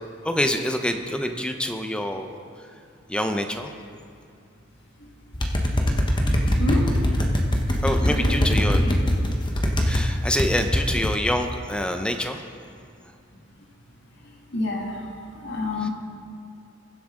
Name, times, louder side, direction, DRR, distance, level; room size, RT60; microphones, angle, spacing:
voice 1, 0.0-2.3 3.1-3.7 7.8-8.8 9.8-12.5 15.8-15.9, left 1 dB, 5° left, 5 dB, 0.6 m, -26 dB
sound 1, 5.3-10.0 10.4-11.2, equal, 25° left, 1.1 m, -22 dB
voice 2, 8.1-8.9 14.5-15.0 15.4-15.9, left 2 dB, 65° left, -1 dB, 2.1 m, -28 dB
21.5 x 7.8 x 3.8 m, 2.4 s
head